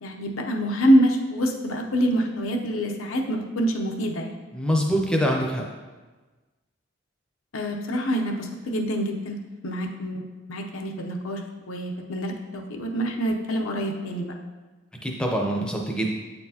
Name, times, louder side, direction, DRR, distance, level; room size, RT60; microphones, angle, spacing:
voice 1, 0.0-4.3 7.5-9.4 9.6-11.4 11.7-14.3, equal, 90° left, 2 dB, 0.7 m, -26 dB
voice 2, 4.5-5.6 15.0-16.1, equal, 5° left, 0 dB, 0.6 m, -24 dB
8.4 x 4.3 x 2.8 m, 1.3 s
head